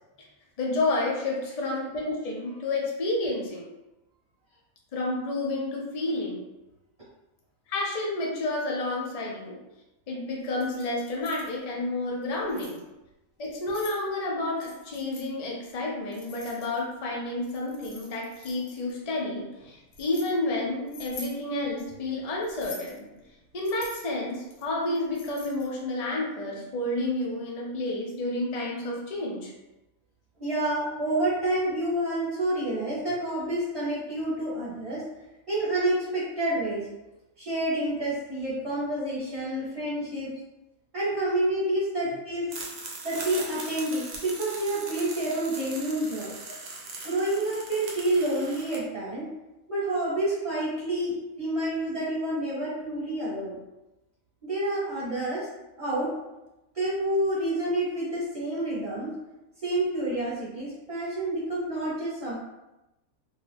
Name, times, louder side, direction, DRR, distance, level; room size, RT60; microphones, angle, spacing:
voice 1, 0.6-3.6 4.9-6.4 7.7-9.6 10.1-12.8 13.4-23.1 23.5-29.5, left 2 dB, 50° left, -3 dB, 0.4 m, -30 dB
Keys jangling, 10.4-11.5 12.2-12.8 13.4-14.0 14.6-15.3 16.1-17.0 17.4-18.9 19.6-20.3 20.9-21.4 22.4-23.0 23.6-25.7, left 3 dB, 85° left, 1.2 m, -46 dB
voice 2, 30.4-35.0 35.5-36.9 37.4-40.3 40.9-42.5 43.0-46.3 47.0-49.3 49.7-53.6 54.4-55.5 55.8-56.1 56.7-59.1 59.6-62.3, right 1 dB, 30° right, -11 dB, 0.9 m, -28 dB
sound 1, 42.5-48.8, right 3 dB, 60° right, 0.8 m, -40 dB
2.7 x 2.3 x 3.3 m, 0.97 s
omnidirectional pair, 1.5 m